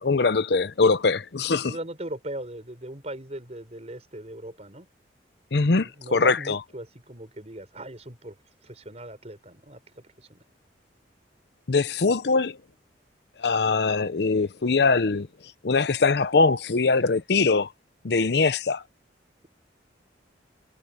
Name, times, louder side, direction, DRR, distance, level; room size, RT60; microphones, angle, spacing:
voice 1, 0.0-1.8 5.5-6.6 11.7-12.6 13.4-15.3 15.6-17.7 18.0-18.8, left 4 dB, 65° left, 0.7 m, -22 dB
voice 2, 1.7-4.9 5.6-8.4 8.6-9.8 10.2-10.4, right 1 dB, 35° right, 5.1 m, -39 dB
head